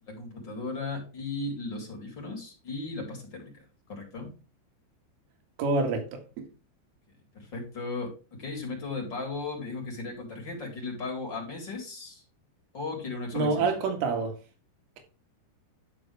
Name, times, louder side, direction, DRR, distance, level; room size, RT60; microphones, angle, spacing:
voice 1, 0.0-4.3 7.3-12.2 12.7-13.7, left 3 dB, 25° left, 4.1 m, -36 dB
voice 2, 5.6-6.5 13.3-14.3, right 3 dB, 85° right, 4.4 m, -27 dB
12.5 x 6.0 x 3.4 m
omnidirectional pair, 5.5 m